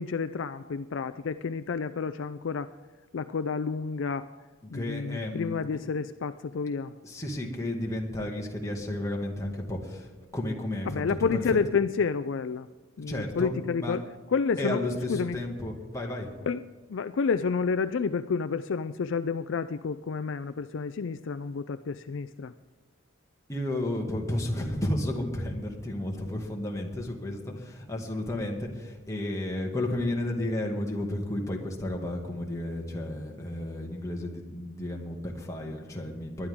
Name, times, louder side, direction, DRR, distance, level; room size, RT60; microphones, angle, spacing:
voice 1, 0.0-2.7 3.1-4.3 4.7-6.9 10.9-12.7 13.0-14.0 14.3-14.8 15.1-15.4 16.4-16.6 16.9-22.5, left 5 dB, 65° left, 12 dB, 0.4 m, -30 dB
voice 2, 4.7-5.8 7.0-11.0 11.3-11.4 13.1-14.0 14.6-16.3 23.5-36.5, left 1 dB, 15° left, -1 dB, 2.0 m, -32 dB
20.0 x 11.5 x 3.6 m, 1.4 s
head